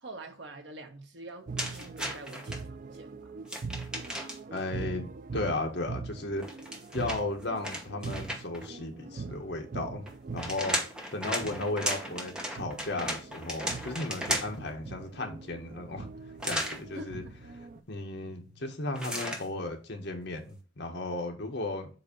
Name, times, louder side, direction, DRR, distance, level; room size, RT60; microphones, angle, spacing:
voice 1, 0.0-3.4 16.9-17.3, right 2 dB, 60° right, 1.2 m, -46 dB
sound 1, 1.5-17.8, right 4 dB, 40° right, 0.4 m, -42 dB
sound 2, 1.6-2.6 3.4-4.6 6.4-8.7 10.1-14.7 16.4-16.8 18.9-19.5, equal, 5° right, 1.0 m, -35 dB
voice 2, 4.5-6.4 6.9-10.8 11.1-16.1 16.4-17.2 17.9-21.9, left 2 dB, 60° left, 1.4 m, -35 dB
sound 3, 15.9-20.5, left 1 dB, 25° left, 2.3 m, -60 dB
7.8 x 2.8 x 5.3 m
head